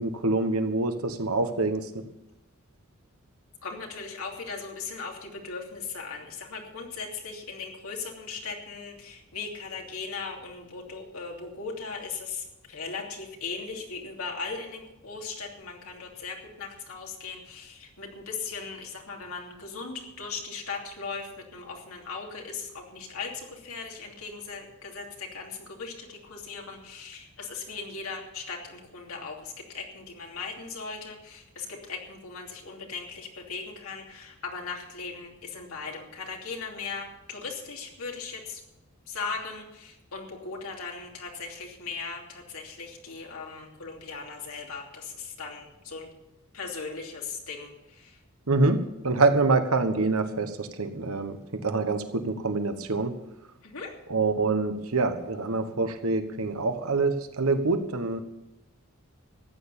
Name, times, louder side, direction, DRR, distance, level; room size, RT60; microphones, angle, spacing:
voice 1, 0.0-1.8 48.5-48.8 49.0-51.3 51.6-53.1 54.1-58.2, right 3 dB, 90° right, 9 dB, 1.3 m, -25 dB
voice 2, 3.6-38.6 39.1-46.1 46.5-48.2 53.6-53.9, left 4 dB, 90° left, 0 dB, 2.9 m, -38 dB
14.0 x 9.1 x 7.2 m, 0.92 s
head